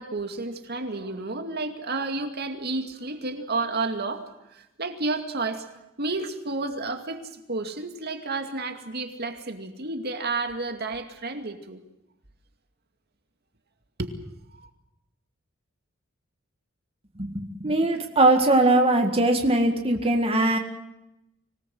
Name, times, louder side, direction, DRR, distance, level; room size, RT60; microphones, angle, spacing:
voice 1, 0.0-11.8 14.0-14.1 14.6-14.7, right 3 dB, 50° right, 6 dB, 2.3 m, -31 dB
voice 2, 17.2-20.6, right 2 dB, 30° right, 4 dB, 2.0 m, -21 dB
25.5 x 18.5 x 7.8 m, 0.87 s
head